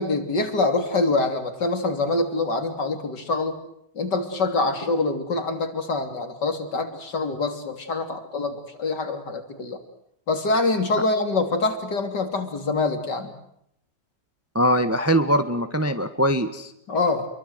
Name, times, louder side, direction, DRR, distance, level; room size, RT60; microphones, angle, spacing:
voice 1, 0.0-3.6 4.0-9.8 10.3-13.3 16.9-17.3, left 3 dB, 65° left, 7 dB, 3.8 m, -25 dB
voice 2, 14.5-16.7, equal, 10° right, 9 dB, 1.2 m, -22 dB
28.5 x 23.0 x 8.0 m, 0.74 s
omnidirectional pair, 2.0 m